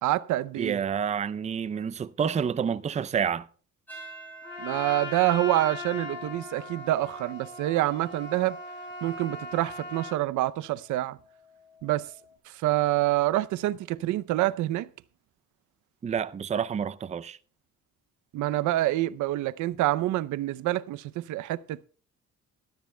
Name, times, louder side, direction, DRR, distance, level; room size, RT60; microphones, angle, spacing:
voice 1, 0.0-0.8 4.6-8.6 9.0-11.2 11.8-12.1 12.5-14.9 18.3-21.9, right 15 dB, 85° right, 0.6 m, -27 dB
voice 2, 0.6-3.5 16.0-17.4, right 7 dB, 25° right, 0.5 m, -29 dB
sound 1, 3.9-12.4, equal, 5° left, 5.0 m, -51 dB
Trumpet, 4.4-10.2, left 2 dB, 40° left, 5.9 m, -39 dB
17.5 x 13.0 x 2.2 m
cardioid pair, 130°, 29 cm